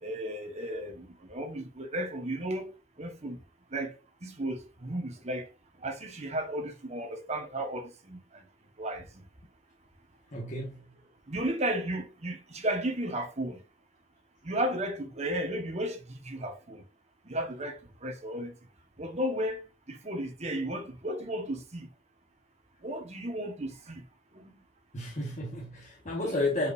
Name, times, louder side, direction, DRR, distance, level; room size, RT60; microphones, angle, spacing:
voice 1, 0.0-2.7 3.0-3.4 3.7-3.9 4.2-5.5 5.8-8.4 8.8-9.1 11.3-13.6 14.4-16.8 17.2-18.5 19.0-19.6 19.9-21.9 22.8-24.0 24.3-24.5, right 1 dB, 35° right, 1.4 m, -34 dB
voice 2, 10.3-10.8 24.9-26.7, left 2 dB, 40° left, 1.5 m, -32 dB
7.6 x 5.2 x 2.7 m
head